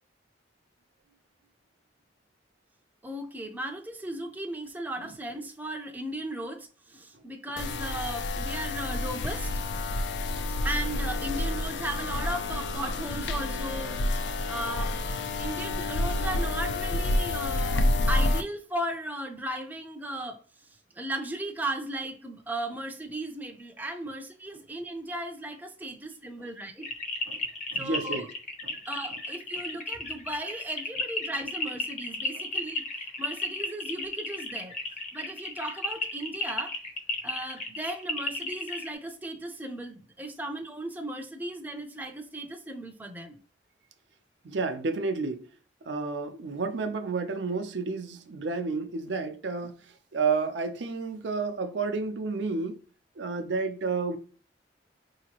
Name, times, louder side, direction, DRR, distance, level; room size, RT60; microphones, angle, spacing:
voice 1, 3.0-9.5 10.6-14.0 14.5-15.0 15.4-20.4 21.0-26.9 27.8-28.2 28.9-32.8 33.2-34.7 35.1-36.8 37.2-43.4, right 1 dB, 10° right, 0.5 m, -36 dB
sound 1, 7.6-18.4, left 2 dB, 75° left, 0.4 m, -29 dB
sound 2, 26.8-38.9, left 3 dB, 40° left, 0.7 m, -34 dB
voice 2, 27.7-28.3 28.6-28.8 44.4-45.5 45.8-52.8 53.2-54.2, right 4 dB, 80° right, 0.5 m, -31 dB
4.8 x 2.8 x 2.9 m
head